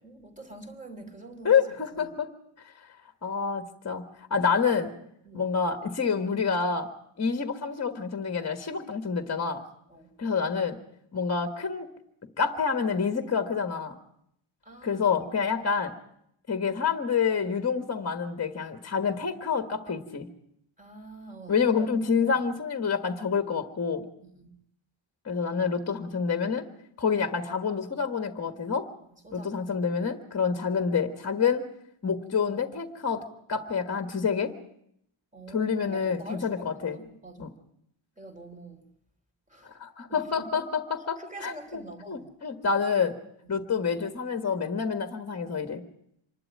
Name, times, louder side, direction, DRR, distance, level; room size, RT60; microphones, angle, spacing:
voice 1, 0.0-1.6 1.9-2.1 5.2-5.5 9.9-10.1 14.6-15.3 20.8-21.9 22.2-22.4 24.2-24.5 29.2-29.7 35.3-37.5 38.2-38.9 39.5-39.8 40.1-40.6 41.2-42.3 43.4-43.6, right 2 dB, 15° right, 4 dB, 3.1 m, -46 dB
voice 2, 1.4-2.3 3.2-4.0 4.3-4.9 5.3-6.9 7.2-9.6 10.2-10.8 11.1-11.9 12.4-13.9 14.8-15.9 16.5-20.3 21.5-24.1 25.2-26.7 27.0-28.8 29.3-31.6 32.0-33.2 33.5-34.5 35.5-37.0 37.4-37.5 39.8-41.8 42.1-43.1 43.5-45.8, left 6 dB, 30° left, 6 dB, 1.5 m, -27 dB
26.0 x 12.0 x 8.6 m, 0.74 s
wide cardioid pair, 180°, 49 cm